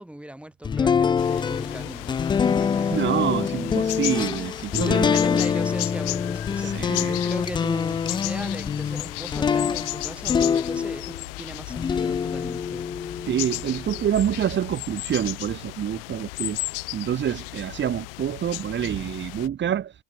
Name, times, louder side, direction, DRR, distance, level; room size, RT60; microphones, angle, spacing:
voice 1, 0.0-3.0 4.9-13.3, right 1 dB, 5° right, 6.8 m, -38 dB
sound 1, 0.6-11.2 11.7-14.0, left 6 dB, 15° left, 0.4 m, -25 dB
sound 2, 1.2-19.5, left 24 dB, 70° left, 2.7 m, -35 dB
voice 2, 2.9-5.1 6.6-7.2 13.3-16.6 16.9-19.9, right 10 dB, 40° right, 4.2 m, -27 dB
hypercardioid pair, 85°, 30 cm